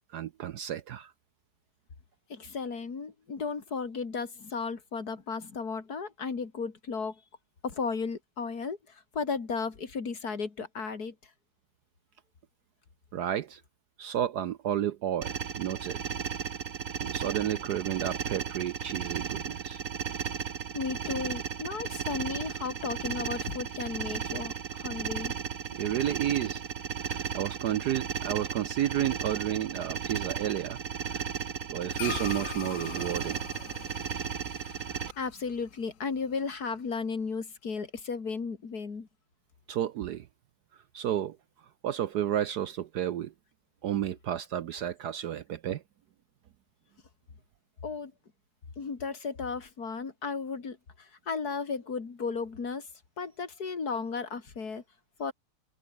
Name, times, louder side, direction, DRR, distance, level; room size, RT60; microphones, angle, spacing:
voice 1, 0.1-1.1 13.1-13.6 14.0-16.0 17.0-19.8 25.8-26.6 27.0-30.8 31.1-31.2 31.7-33.4 39.7-40.3 40.9-41.4 41.8-43.3 43.8-45.8, right 11 dB, 70° right, 1.0 m, -31 dB
voice 2, 2.3-7.2 7.6-11.1 20.7-25.4 35.2-39.1 47.8-48.1 48.8-52.9 53.2-54.8 55.2-55.3, left 5 dB, 45° left, 3.1 m, -34 dB
sound 1, 15.2-35.1, right 7 dB, 40° right, 1.5 m, -35 dB
sound 2, 32.0-36.6, left 10 dB, 65° left, 0.8 m, -42 dB
omnidirectional pair, 2.4 m